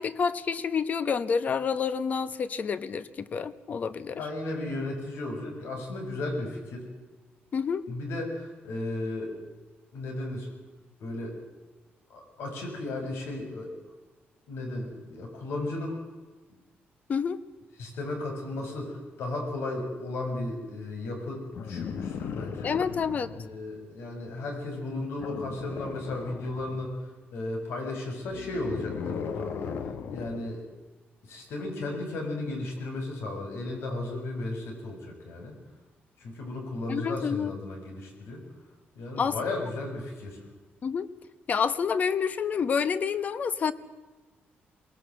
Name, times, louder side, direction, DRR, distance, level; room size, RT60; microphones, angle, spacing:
voice 1, 0.0-4.2 7.5-7.8 17.1-17.4 22.6-23.3 36.9-37.5 39.2-39.6 40.8-41.1 41.5-43.7, left 6 dB, 40° left, 14 dB, 1.0 m, -28 dB
voice 2, 4.2-6.9 7.9-9.3 9.9-10.5 11.0-11.4 12.1-13.7 14.5-16.0 17.8-22.8 23.3-29.8 30.1-30.6 31.2-35.5 36.2-38.4 39.0-40.4, left 2 dB, 85° left, 2 dB, 7.0 m, -35 dB
sound 1, 21.5-23.5 25.2-26.9 28.2-30.5 31.9-32.0, left 7 dB, 65° left, 1.3 m, -37 dB
22.5 x 19.5 x 7.8 m, 1.3 s
cardioid pair, 160°, 4 cm